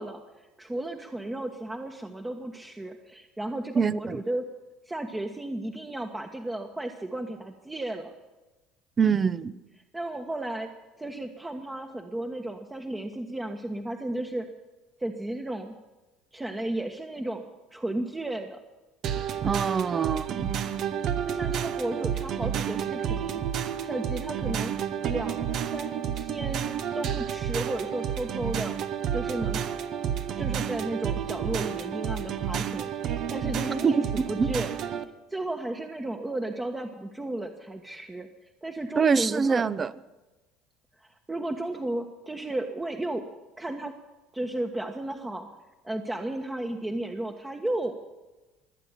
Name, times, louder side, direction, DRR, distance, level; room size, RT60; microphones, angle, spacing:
voice 1, 0.0-4.4 4.9-8.1 9.9-10.7 11.0-14.5 15.0-15.7 16.3-17.4 17.7-18.6 21.3-23.4 23.8-24.7 25.1-28.7 29.1-29.6 30.4-34.7 35.3-38.3 38.6-39.7 41.0-43.2 43.6-43.9 44.3-45.5 45.8-47.9, right 1 dB, 15° right, 3 dB, 1.3 m, -34 dB
voice 2, 3.8-4.2 9.0-9.5 19.4-20.5 33.8-33.9 34.4-34.5 39.0-39.9, right 6 dB, 30° right, 17 dB, 0.7 m, -24 dB
sound 1, 19.0-35.0, right 9 dB, 55° right, 1.0 m, -30 dB
23.0 x 8.4 x 7.4 m, 1.1 s
supercardioid pair, 85°, 0 cm